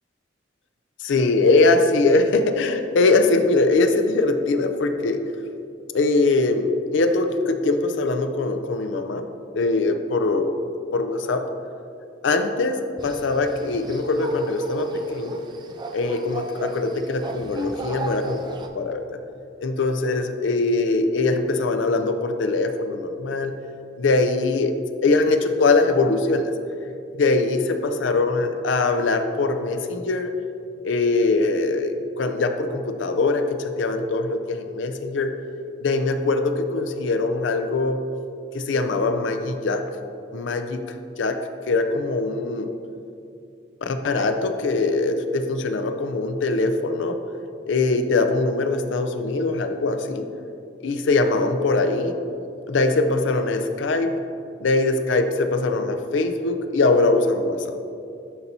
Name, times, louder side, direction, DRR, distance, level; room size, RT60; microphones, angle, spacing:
voice 1, 1.0-5.2 5.9-9.3 9.5-10.5 10.9-11.5 12.2-15.4 15.9-18.4 18.7-19.2 19.6-23.5 24.0-24.7 25.0-26.5 27.2-30.3 30.8-35.3 35.8-38.0 38.5-39.8 40.3-41.4 41.7-42.7 43.8-47.2 47.7-50.2 50.8-52.1 52.7-54.1 54.6-57.8, left 3 dB, 80° left, 8 dB, 0.5 m, -22 dB
sound 1, 13.0-18.7, right 2 dB, 25° right, 0.4 m, -33 dB
11.0 x 4.2 x 2.7 m, 2.6 s
head